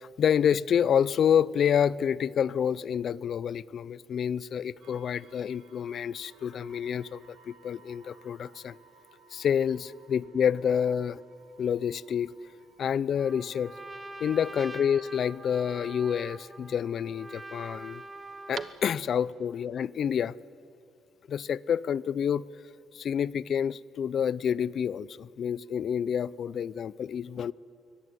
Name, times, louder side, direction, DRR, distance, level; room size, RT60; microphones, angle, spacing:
voice 1, 0.0-8.8 9.3-11.2 11.6-12.3 12.8-13.8 14.2-18.0 18.5-20.4 21.3-22.5 22.9-27.5, left 8 dB, 50° left, 0.5 m, -28 dB
sound 1, 4.8-19.8, right 4 dB, 60° right, 3.4 m, -60 dB
sound 2, 10.9-19.4, right 6 dB, 35° right, 1.0 m, -51 dB
Trumpet, 13.2-18.8, right 2 dB, 10° right, 1.3 m, -44 dB
23.0 x 18.5 x 9.9 m
cardioid pair, 135°, 0 cm